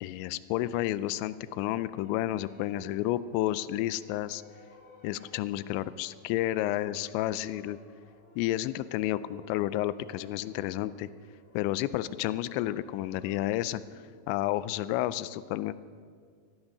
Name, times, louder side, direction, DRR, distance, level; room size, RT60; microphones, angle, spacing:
voice 1, 0.0-4.4 5.0-7.8 8.4-11.1 11.5-13.8 14.3-15.7, left 14 dB, 90° left, 16 dB, 2.9 m, -31 dB
sound 1, 1.1-14.2, left 2 dB, 30° left, 2.0 m, -58 dB
14.5 x 14.0 x 6.5 m, 2.1 s
omnidirectional pair, 5.1 m